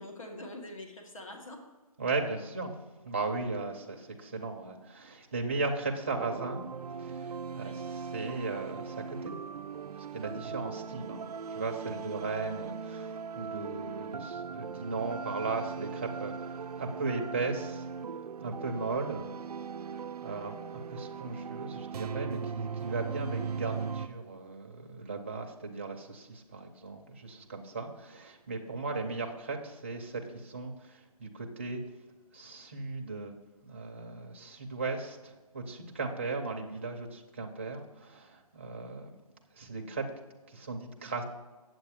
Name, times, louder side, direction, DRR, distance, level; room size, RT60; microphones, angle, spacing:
voice 1, 0.0-1.6 7.5-7.8 20.2-20.6, left 1 dB, 55° left, 3 dB, 1.6 m, -45 dB
voice 2, 2.0-2.7 3.0-6.6 7.0-9.3 9.9-16.3 16.8-17.9 18.4-19.3 20.2-31.8 32.3-33.4 33.6-39.1 39.6-40.1 40.5-41.2, right 3 dB, 20° right, 2 dB, 0.6 m, -37 dB
sound 1, 6.1-24.1, right 6 dB, 80° right, 0.4 m, -39 dB
8.4 x 7.9 x 3.5 m, 1.3 s
hypercardioid pair, 170°, 20 cm